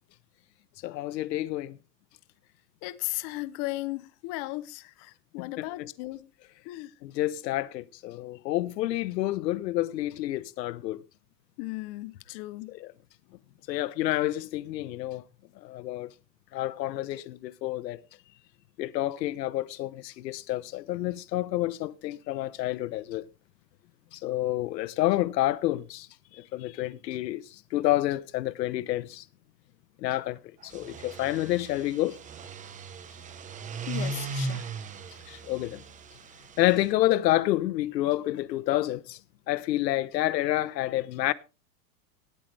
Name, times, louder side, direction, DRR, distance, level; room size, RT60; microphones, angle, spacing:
voice 1, 0.8-1.8 5.4-5.9 7.0-11.0 12.7-12.9 13.7-15.2 15.6-16.1 16.5-18.0 18.8-23.3 24.1-26.1 26.3-29.2 30.0-32.2 35.3-35.8 36.6-39.2 39.5-41.3, left 15 dB, 80° left, 1.0 m, -29 dB
voice 2, 2.8-6.3 6.6-6.9 11.6-12.7 33.9-34.6, left 19 dB, 30° left, 0.7 m, -36 dB
sound 1, 30.6-36.9, right 3 dB, 15° right, 1.0 m, -38 dB
18.5 x 9.1 x 3.4 m
supercardioid pair, 155°, 49 cm